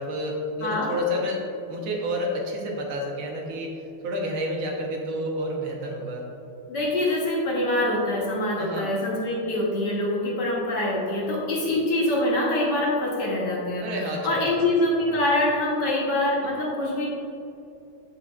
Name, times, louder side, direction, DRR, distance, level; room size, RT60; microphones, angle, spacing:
voice 1, 0.0-6.3 8.6-8.9 13.8-14.7 15.1-15.2, equal, 70° right, 0 dB, 1.7 m, -30 dB
voice 2, 0.6-0.9 6.7-13.9 14.2-17.1, left 1 dB, 55° left, -4 dB, 1.6 m, -24 dB
8.2 x 6.8 x 2.4 m, 2.6 s
omnidirectional pair, 2.3 m